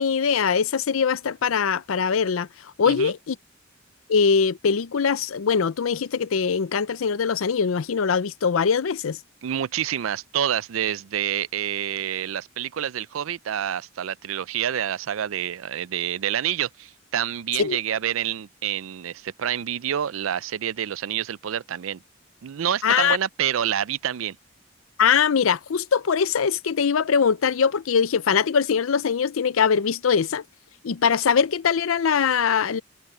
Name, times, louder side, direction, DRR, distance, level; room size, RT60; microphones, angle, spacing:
voice 1, 0.0-2.5 2.8-3.4 4.1-9.2 17.6-17.8 22.8-23.2 25.0-30.4 30.8-32.8, left 6 dB, 85° left, 0.5 m, -22 dB
voice 2, 9.4-22.0 22.4-24.4, right 10 dB, 85° right, 0.4 m, -28 dB
head